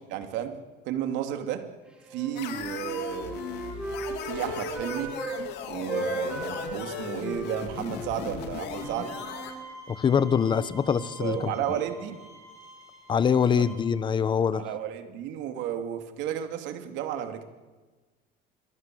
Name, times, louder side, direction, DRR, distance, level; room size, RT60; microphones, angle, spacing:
voice 1, 0.1-0.6 0.9-1.6 2.1-3.5 4.2-5.2 5.7-9.1 11.2-12.2 13.6-13.7 14.5-17.4, right 10 dB, 65° right, 6 dB, 3.0 m, -32 dB
Wind instrument woodwind instrument, 2.0-5.4 5.7-9.6, right 1 dB, 5° right, 4.3 m, -36 dB
sound 1, 2.4-9.5, left 9 dB, 60° left, 3.0 m, -38 dB
Bowed string instrument, 8.7-13.7, right 2 dB, 35° right, 7.0 m, -47 dB
voice 2, 9.9-11.5 13.1-14.7, left 7 dB, 25° left, 15 dB, 1.0 m, -24 dB
26.5 x 23.5 x 7.9 m, 1.3 s
cardioid pair, 160°, 20 cm